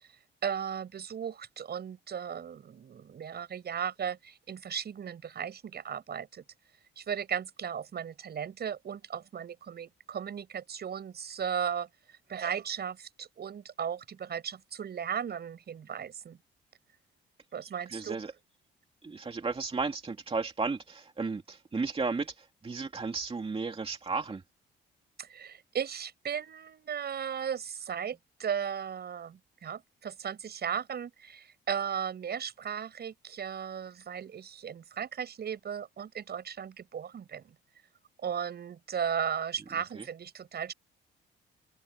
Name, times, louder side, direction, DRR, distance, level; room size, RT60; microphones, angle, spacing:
voice 1, 0.4-6.4 7.0-11.9 12.3-16.4 17.5-18.2 25.2-37.5 38.2-40.7, right 8 dB, 55° right, 7.2 m, -36 dB
voice 2, 17.9-18.3 19.0-24.4 39.7-40.0, right 4 dB, 30° right, 2.4 m, -34 dB
cardioid pair, 90°, 20 cm